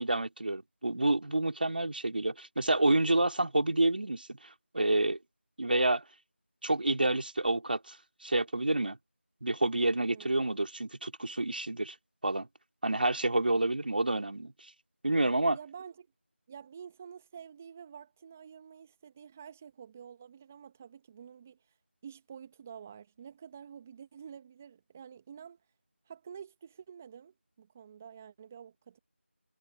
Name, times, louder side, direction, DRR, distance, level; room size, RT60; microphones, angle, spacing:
voice 1, 0.0-4.3 4.7-5.2 5.6-6.0 6.6-8.0 8.2-9.0 9.4-11.9 12.2-12.5 12.8-14.5 15.0-15.6, right 2 dB, 50° right, 4.0 m, -28 dB
voice 2, 10.1-10.4 15.5-16.1 16.5-21.7 22.0-25.6 26.1-29.0, right 7 dB, 10° right, 1.4 m, -49 dB
figure-of-eight pair, 170°, 7 cm